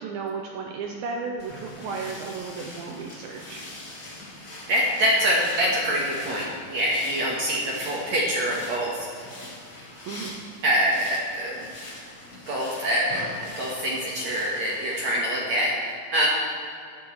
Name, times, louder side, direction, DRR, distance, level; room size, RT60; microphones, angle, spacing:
voice 1, 0.0-3.6 10.1-10.4, right 4 dB, 85° right, 2 dB, 2.1 m, -34 dB
sound 1, 1.4-15.1, left 1 dB, 80° left, 0.7 m, -42 dB
voice 2, 4.7-9.1 10.6-11.5 12.5-16.3, equal, 60° right, -4 dB, 1.9 m, -25 dB
15.5 x 12.0 x 3.2 m, 2.5 s
omnidirectional pair, 4.9 m